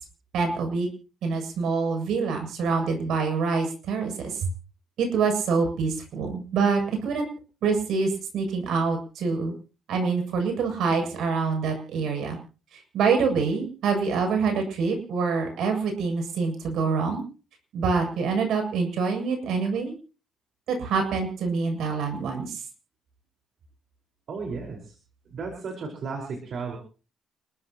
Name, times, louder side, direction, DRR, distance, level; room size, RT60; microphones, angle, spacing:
voice 1, 0.3-0.9 1.2-4.5 5.0-7.3 7.6-9.5 9.9-12.4 12.7-17.2 17.7-19.9 20.7-22.6, right 5 dB, 80° right, 4 dB, 7.7 m, -26 dB
voice 2, 24.3-25.0 25.3-26.8, right 4 dB, 60° right, 1 dB, 5.0 m, -34 dB
30.0 x 14.5 x 3.0 m, 0.38 s
cardioid pair, 90°, 0 cm